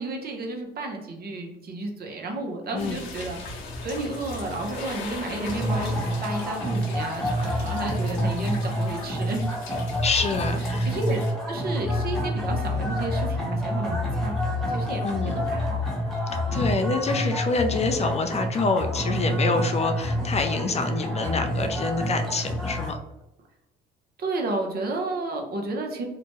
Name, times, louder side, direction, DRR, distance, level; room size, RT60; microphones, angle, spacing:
voice 1, 0.0-3.4 3.8-5.9 6.2-9.5 10.0-10.3 10.8-11.2 11.5-14.4 14.7-15.7 16.3-16.4 21.2-21.4 24.2-26.1, right 2 dB, 50° right, 3 dB, 0.7 m, -32 dB
sound 1, 2.8-11.3, left 3 dB, 75° left, 0.8 m, -39 dB
sound 2, 5.5-22.9, equal, ahead, 0.9 m, -28 dB
voice 2, 10.0-10.9 15.0-15.3 16.5-23.0, left 3 dB, 35° left, 6 dB, 0.4 m, -26 dB
2.8 x 2.2 x 2.9 m, 0.98 s
supercardioid pair, 75°, 20 cm